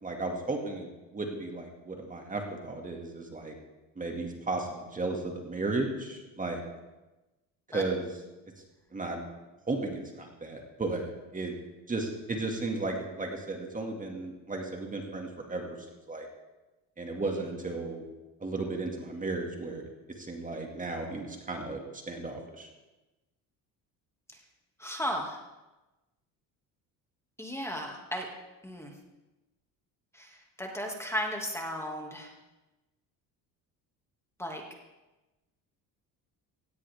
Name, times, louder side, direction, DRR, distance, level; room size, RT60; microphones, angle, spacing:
voice 1, 0.0-3.5 4.0-6.7 7.7-8.1 8.9-9.2 9.7-11.5 11.9-15.8 16.1-16.3 17.0-18.0 18.4-19.9 20.2-22.7, right 2 dB, 20° right, 2 dB, 2.3 m, -34 dB
voice 2, 24.8-25.4 27.4-28.3 28.6-28.9 30.1-32.3 34.4-34.6, equal, 5° left, 1 dB, 2.4 m, -35 dB
17.0 x 16.0 x 3.6 m, 1.1 s
cardioid pair, 110°, 37 cm